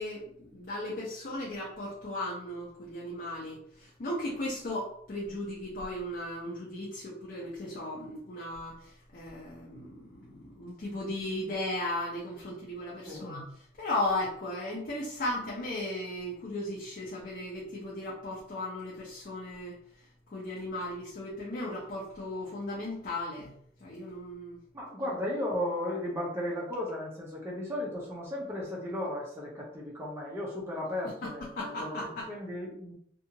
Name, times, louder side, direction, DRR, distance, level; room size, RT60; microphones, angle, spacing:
voice 1, 0.0-13.5 13.8-19.7 20.3-23.5 23.8-24.6 31.6-32.3, left 1 dB, 45° left, -4 dB, 0.6 m, -36 dB
voice 2, 24.7-32.9, left 1 dB, 15° right, -5 dB, 0.5 m, -35 dB
2.7 x 2.4 x 2.8 m, 0.66 s
head